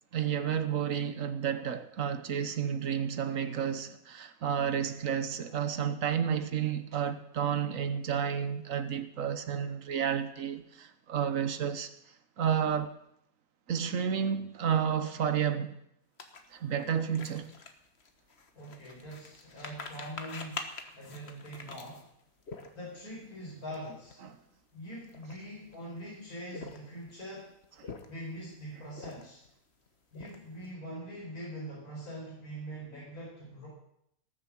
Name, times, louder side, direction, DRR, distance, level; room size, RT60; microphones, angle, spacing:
voice 1, 0.1-11.9 12.4-12.9 13.7-15.8 16.5-17.5 24.2-24.3, right 8 dB, 65° right, 1.3 m, -31 dB
sound 1, 16.2-23.1 23.6-23.8 24.0-24.3 24.9-25.8 26.4-27.1 27.6-28.4 28.9-29.5 29.9-30.7, left 4 dB, 50° left, 1.5 m, -45 dB
voice 2, 18.5-20.6 20.9-22.1 22.7-24.2 24.7-27.5 28.0-29.4 30.1-33.7, equal, 90° left, 5.1 m, -43 dB
18.5 x 7.3 x 7.5 m
omnidirectional pair, 1.5 m